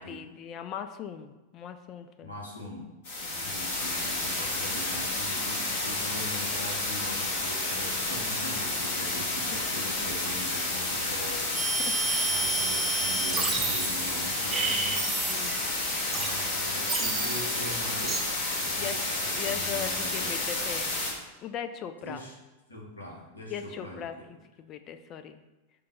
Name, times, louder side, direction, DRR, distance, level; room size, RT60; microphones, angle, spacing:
voice 1, 0.0-2.3 3.2-3.7 5.9-6.1 9.5-9.6 11.3-12.4 15.1-15.6 18.8-20.9 21.4-22.2 23.5-25.4, left 8 dB, 35° left, 8 dB, 0.3 m, -40 dB
voice 2, 2.2-2.9 3.3-11.9 12.2-15.0 16.1-18.2 18.6-19.1 19.4-20.5 22.0-22.3 22.7-24.1, left 1 dB, 80° left, -2 dB, 0.8 m, -41 dB
sound 1, 3.0-21.1, left 2 dB, 55° left, 1.1 m, -30 dB
sound 2, 11.5-15.7 16.1-18.2, right 3 dB, 15° right, 0.6 m, -31 dB
5.2 x 2.1 x 4.2 m, 1.1 s
figure-of-eight pair, 90°, 0 cm